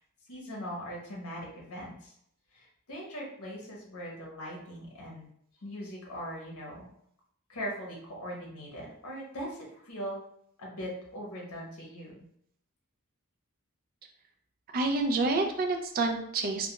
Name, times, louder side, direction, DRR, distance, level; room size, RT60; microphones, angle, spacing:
voice 1, 0.3-2.1 2.5-5.3 5.6-6.9 7.5-10.2 10.6-12.2, equal, 70° left, -3 dB, 0.8 m, -40 dB
voice 2, 14.7-16.7, right 3 dB, 40° right, 4 dB, 0.4 m, -28 dB
2.3 x 2.2 x 2.8 m, 0.69 s
head